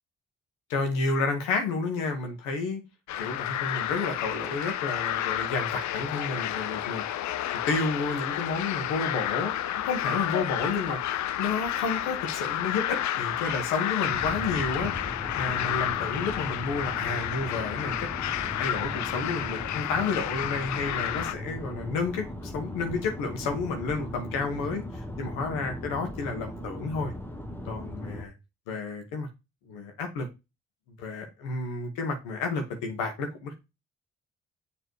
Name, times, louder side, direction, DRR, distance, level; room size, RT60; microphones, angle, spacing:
voice 1, 0.7-2.8 3.2-7.0 7.5-9.6 9.8-11.0 11.4-14.9 15.4-18.1 18.6-27.1 27.6-28.3 28.7-29.3 29.7-30.3 31.0-33.5, left 4 dB, 90° left, 1.3 m, -31 dB
sound 1, 3.1-21.3, left 12 dB, 65° left, 0.5 m, -31 dB
sound 2, 14.1-28.3, left 1 dB, 5° left, 1.1 m, -38 dB
7.0 x 3.3 x 4.6 m
supercardioid pair, 50°, 31 cm